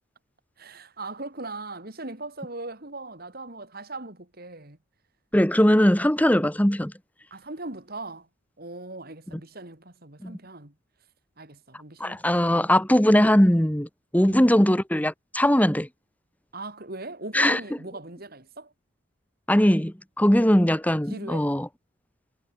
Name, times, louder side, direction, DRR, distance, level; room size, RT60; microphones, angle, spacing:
voice 1, 0.6-4.8 7.3-8.3 8.6-10.7 11.4-12.7 14.2-14.5 16.5-18.7 21.1-21.5, right 2 dB, 45° right, 2.8 m, -39 dB
voice 2, 5.3-6.9 9.3-9.4 10.2-10.4 12.0-13.9 14.1-15.9 17.3-17.6 19.5-21.7, equal, 10° left, 1.3 m, -20 dB
head